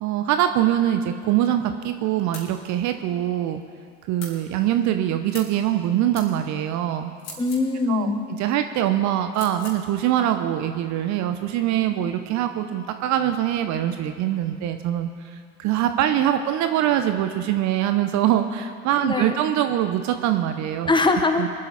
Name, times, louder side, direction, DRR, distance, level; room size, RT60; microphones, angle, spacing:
voice 1, 0.0-3.6 4.1-7.1 7.9-8.1 8.4-15.1 15.6-20.9 21.4-21.5, right 11 dB, 40° right, 8 dB, 0.9 m, -23 dB
sound 1, 2.3-2.5 4.2-4.4 5.3-5.6 6.1-6.3 7.2-7.7 9.3-9.8, left 3 dB, 55° left, 4.0 m, -39 dB
voice 2, 7.4-8.2 19.0-19.4 20.9-21.5, left 3 dB, 10° left, 6 dB, 1.3 m, -22 dB
24.5 x 8.3 x 4.2 m, 2.2 s
hypercardioid pair, 80°, 42 cm